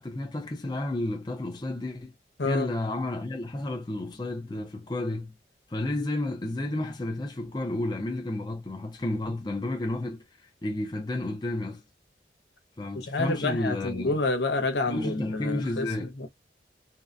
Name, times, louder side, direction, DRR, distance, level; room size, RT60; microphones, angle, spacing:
voice 1, 0.0-2.1 2.4-5.3 5.7-10.2 10.6-11.8 12.8-14.2 14.9-16.1, left 2 dB, 25° left, 0.5 m, -31 dB
voice 2, 13.1-15.9 16.2-16.3, left 2 dB, 75° left, 0.7 m, -28 dB
2.7 x 2.1 x 2.4 m
head